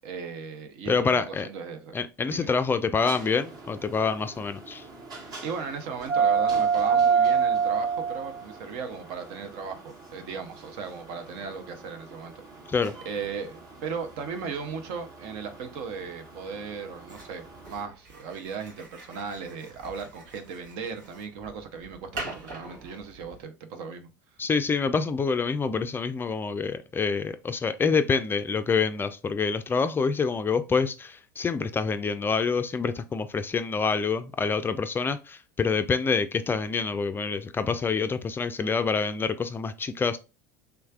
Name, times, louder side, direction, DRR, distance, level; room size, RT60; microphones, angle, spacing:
voice 1, 0.0-2.0 2.3-2.5 5.2-12.4 13.0-24.1, right 5 dB, 60° right, 0.7 m, -37 dB
voice 2, 0.9-1.5 1.9-4.9 12.7-12.9 24.4-40.2, left 5 dB, 20° left, 0.4 m, -26 dB
sound 1, 3.0-17.7, right 6 dB, 45° right, 1.2 m, -28 dB
sound 2, 17.1-23.4, right 2 dB, 80° right, 1.4 m, -44 dB
3.4 x 3.2 x 2.4 m
hypercardioid pair, 75°, 10 cm